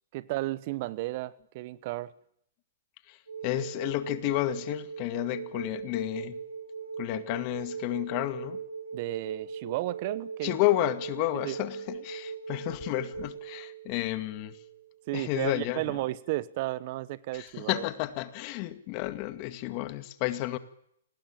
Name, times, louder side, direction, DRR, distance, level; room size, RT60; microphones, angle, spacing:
voice 1, 0.1-2.1 8.9-10.6 11.4-11.6 15.1-17.8, right 18 dB, 45° right, 1.1 m, -33 dB
voice 2, 3.1-6.4 7.0-8.6 10.4-14.6 15.1-16.0 17.3-20.6, left 16 dB, 40° left, 2.2 m, -31 dB
sound 1, 3.3-15.7 17.5-17.6, right 6 dB, 85° right, 5.4 m, -40 dB
29.0 x 20.0 x 9.0 m
hypercardioid pair, 130°, 0 cm